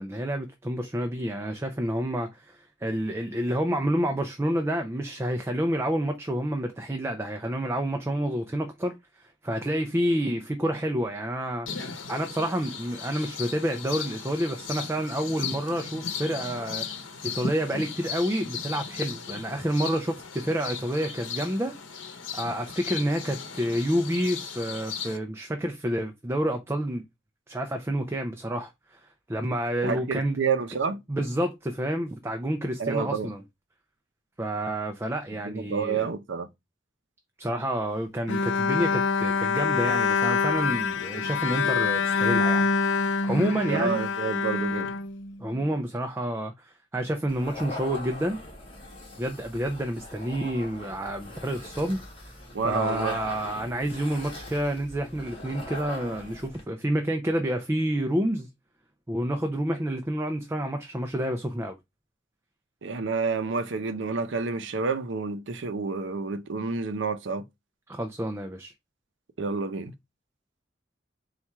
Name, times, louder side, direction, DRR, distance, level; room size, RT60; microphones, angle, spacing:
voice 1, 0.0-11.7 12.1-16.9 17.2-21.7 22.3-27.0 27.5-29.0 29.3-30.4 31.1-33.4 34.4-36.1 37.4-42.9 43.2-44.0 45.4-48.4 49.2-52.4 52.6-58.5 59.1-61.7 67.9-68.7, right 1 dB, 15° right, 0.4 m, -29 dB
sound 1, 11.7-25.2, left 6 dB, 90° left, 0.8 m, -37 dB
voice 2, 29.8-31.0 32.8-33.3 35.4-36.5 43.7-44.9 52.5-53.2 62.8-67.4 69.4-69.9, right 5 dB, 70° right, 0.6 m, -29 dB
Bowed string instrument, 38.3-45.7, left 5 dB, 70° left, 0.4 m, -25 dB
sound 2, 47.3-56.6, left 2 dB, 30° left, 1.6 m, -41 dB
4.2 x 2.4 x 4.5 m
head